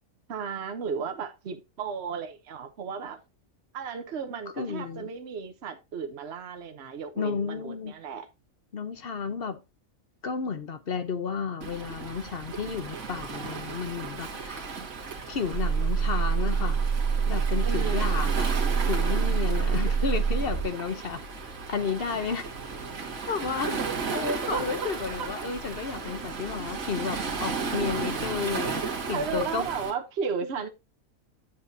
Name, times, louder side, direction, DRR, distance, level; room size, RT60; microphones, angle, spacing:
voice 1, 0.3-3.2 3.7-8.3 17.6-18.3 24.2-24.9 25.2-25.3 29.1-30.7, right 6 dB, 55° right, 1.2 m, -34 dB
voice 2, 4.6-5.1 7.2-7.9 8.7-9.6 10.2-14.7 15.3-16.8 17.3-18.5 18.8-21.2 21.7-22.5 23.0-23.8 24.1-29.7, left 5 dB, 50° left, 1.0 m, -32 dB
Waves surf, 11.6-29.9, right 5 dB, 85° right, 2.0 m, -35 dB
sound 1, 15.5-20.6, right 6 dB, 85° left, 5.4 m, -25 dB
8.6 x 7.6 x 2.7 m
omnidirectional pair, 1.4 m